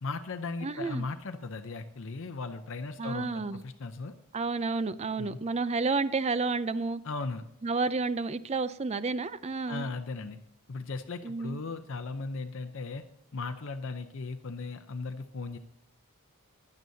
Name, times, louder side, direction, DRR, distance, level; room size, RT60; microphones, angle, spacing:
voice 1, 0.0-4.1 5.2-5.4 7.0-7.4 9.7-10.4 10.7-13.0 13.3-15.6, left 3 dB, 60° left, 7 dB, 0.6 m, -37 dB
voice 2, 0.6-1.1 3.0-3.6 4.3-7.0 7.6-9.9 11.2-11.6, right 3 dB, 30° right, 15 dB, 0.4 m, -30 dB
15.5 x 10.5 x 2.7 m, 0.79 s
head